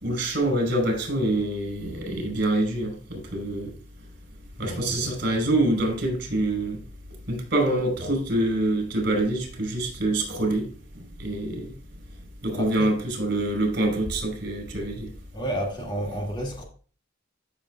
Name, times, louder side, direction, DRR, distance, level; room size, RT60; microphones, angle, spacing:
voice 1, 0.0-3.7 4.6-6.8 7.3-10.7 11.2-11.7 12.4-15.1, right 1 dB, 55° right, 4.6 m, -25 dB
voice 2, 4.6-5.1 12.5-12.9 15.3-16.6, right 1 dB, 25° left, 2.1 m, -31 dB
13.5 x 7.1 x 2.4 m
head